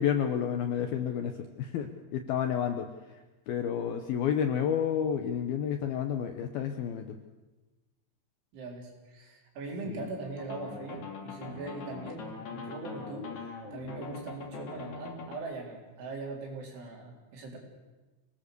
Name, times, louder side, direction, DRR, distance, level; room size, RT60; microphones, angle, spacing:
voice 1, 0.0-7.2 9.9-10.1, left 8 dB, 75° left, 6 dB, 2.3 m, -31 dB
voice 2, 8.5-17.6, right 3 dB, 80° right, -1 dB, 6.4 m, -41 dB
sound 1, 10.4-15.4, left 4 dB, 45° left, 3.2 m, -42 dB
26.5 x 19.0 x 6.8 m, 1.2 s
omnidirectional pair, 5.4 m